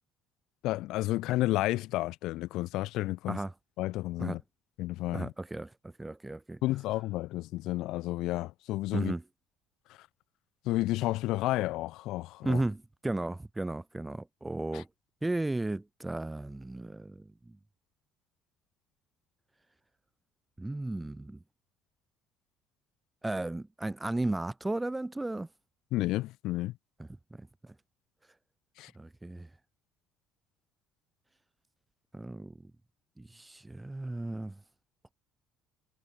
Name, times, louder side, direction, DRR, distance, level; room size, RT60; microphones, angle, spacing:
voice 1, 0.6-3.4 3.8-4.4 4.8-5.3 6.6-9.1 10.6-12.6 14.7-14.8 25.9-26.7 28.8-28.9, left 17 dB, 55° left, 1.0 m, -31 dB
voice 2, 5.1-6.6 8.9-9.2 12.4-14.9 15.2-17.6 20.6-21.4 23.2-25.5 27.3-27.7 29.0-29.5 32.1-32.6 33.2-34.6, right 2 dB, 10° right, 0.3 m, -35 dB
figure-of-eight pair, 55°, 0 cm